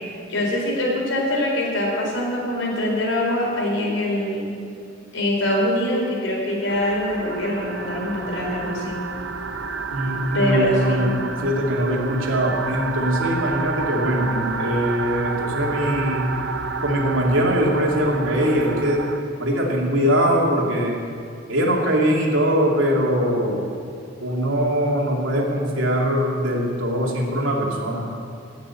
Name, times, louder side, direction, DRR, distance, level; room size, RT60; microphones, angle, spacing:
voice 1, 0.3-4.5 5.1-9.0 10.3-11.1, left 1 dB, 75° left, -2 dB, 3.9 m, -23 dB
sound 1, 6.7-19.2, right 4 dB, 65° right, 0.8 m, -30 dB
voice 2, 9.9-16.3 16.8-19.0 19.4-21.0 21.5-23.7 24.2-28.0, equal, 90° right, -2 dB, 2.6 m, -22 dB
17.0 x 6.7 x 8.3 m, 2.4 s
head